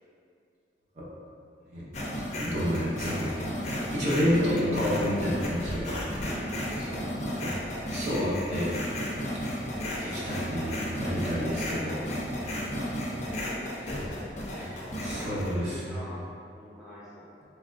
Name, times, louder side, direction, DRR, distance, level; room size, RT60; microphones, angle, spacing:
sound 1, 1.9-15.5, equal, 40° left, 0.5 m, -33 dB
voice 1, 2.4-5.9 7.4-7.5 7.9-8.7 9.4-9.5 10.0-12.0 14.5-16.0, equal, 40° right, -7 dB, 0.7 m, -30 dB
voice 2, 6.8-7.4 13.4-16.2 16.5-17.4, left 1 dB, 5° right, -10 dB, 0.6 m, -44 dB
3.3 x 3.2 x 2.5 m, 2.4 s
head